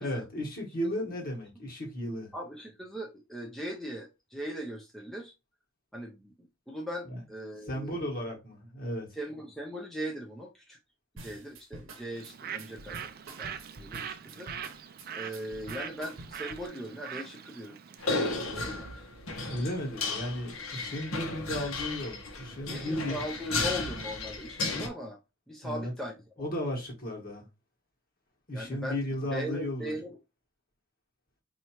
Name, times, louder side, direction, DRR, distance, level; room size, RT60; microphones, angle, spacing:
voice 1, 0.0-2.3 7.1-7.2 7.7-9.1 19.5-23.2 25.6-25.9 26.4-27.4 28.5-29.9, equal, 45° left, 1.4 m, -34 dB
voice 2, 2.3-5.3 5.9-6.3 6.7-8.1 9.1-10.8 11.1-13.1 13.4-14.5 15.1-17.8 18.5-18.9 19.5-19.7 22.7-25.2 25.5-26.5 28.5-29.0 29.3-30.2, equal, ahead, 0.5 m, -39 dB
sound 1, 11.2-16.7, right 2 dB, 65° right, 0.9 m, -47 dB
Bird, 12.1-18.3, right 8 dB, 45° right, 0.4 m, -42 dB
sound 2, 18.0-24.9, left 3 dB, 75° left, 1.1 m, -34 dB
4.6 x 2.8 x 2.9 m
head